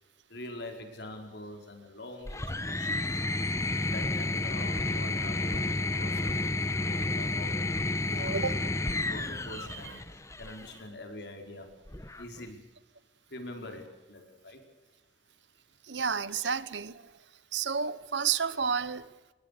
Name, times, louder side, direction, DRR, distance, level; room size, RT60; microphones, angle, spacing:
voice 1, 0.3-3.1 3.8-6.5 6.8-7.5 8.1-8.4 9.1-10.0 10.4-11.7 12.2-12.6 13.3-14.6, left 1 dB, 65° left, 4.9 m, -44 dB
sound 1, 2.3-10.7 11.9-12.5, left 2 dB, 15° left, 1.2 m, -31 dB
voice 2, 8.2-8.5 15.9-17.0 17.5-19.0, right 6 dB, 80° right, 1.1 m, -30 dB
25.0 x 21.5 x 6.8 m
head